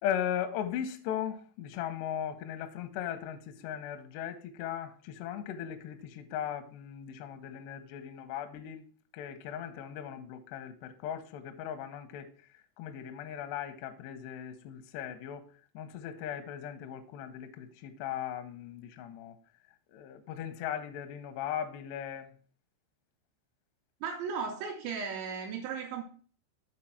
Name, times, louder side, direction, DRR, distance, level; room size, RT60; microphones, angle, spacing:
voice 1, 0.0-8.8 9.1-12.3 12.8-15.4 15.7-19.4 19.9-22.3, left 9 dB, 85° left, 2.4 m, -38 dB
voice 2, 24.0-26.0, right 6 dB, 80° right, 2.8 m, -36 dB
7.6 x 4.3 x 5.6 m
omnidirectional pair, 5.9 m